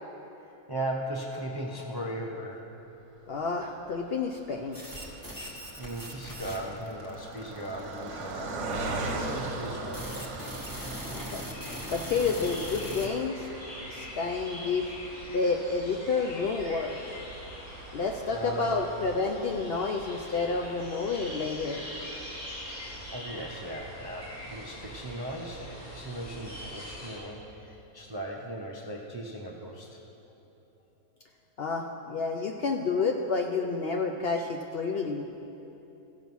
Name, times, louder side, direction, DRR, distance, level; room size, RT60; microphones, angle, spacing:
voice 1, 0.4-2.6 5.8-10.4 17.8-17.9 18.3-18.8 23.1-30.0, right 1 dB, 30° right, 0 dB, 0.4 m, -38 dB
voice 2, 3.3-4.8 11.1-11.5 11.9-13.5 13.9-14.9 15.3-16.9 17.9-21.8 31.6-35.2, left 4 dB, 65° left, 3 dB, 0.6 m, -30 dB
Car passing by, 3.5-18.9 19.5-19.6 19.8-20.0, right 2 dB, 60° right, 1.2 m, -41 dB
sound 1, 4.7-13.1, equal, 15° left, 1.1 m, -40 dB
sound 2, 11.5-27.2, equal, 85° left, 3.1 m, -43 dB
14.5 x 5.4 x 6.1 m, 3.0 s
omnidirectional pair, 1.5 m